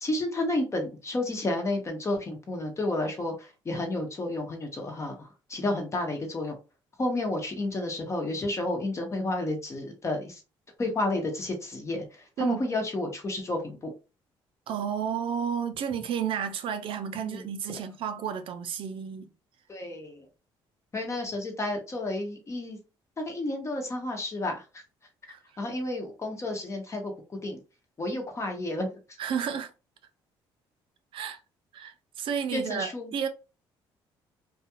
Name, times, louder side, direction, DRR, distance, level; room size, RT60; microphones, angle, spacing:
voice 1, 0.0-6.6 7.0-10.4 10.8-13.9 17.1-17.5 19.7-20.3 20.9-22.8 23.2-24.6 25.2-27.1 27.4-27.6 28.0-28.9 32.5-33.1, left 2 dB, 30° left, 0.9 m, -31 dB
voice 2, 14.7-19.3 25.3-25.4 29.2-29.7 31.1-31.4 31.7-33.3, right 7 dB, 60° right, 0.4 m, -31 dB
2.3 x 2.3 x 2.9 m
cardioid pair, 100°, 10 cm